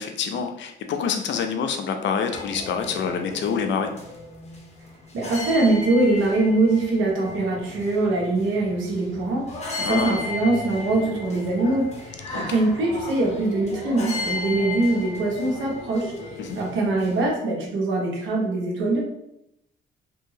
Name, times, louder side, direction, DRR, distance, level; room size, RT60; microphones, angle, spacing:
voice 1, 0.0-3.9 9.8-10.2 12.3-12.4 16.4-16.6, left 6 dB, 65° left, 6 dB, 0.5 m, -27 dB
sound 1, 2.3-17.2, left 3 dB, 35° left, 0.8 m, -35 dB
voice 2, 5.1-16.1 16.5-19.0, right 2 dB, 75° right, -1 dB, 1.0 m, -23 dB
2.8 x 2.7 x 2.7 m, 0.79 s
cardioid pair, 90°, 20 cm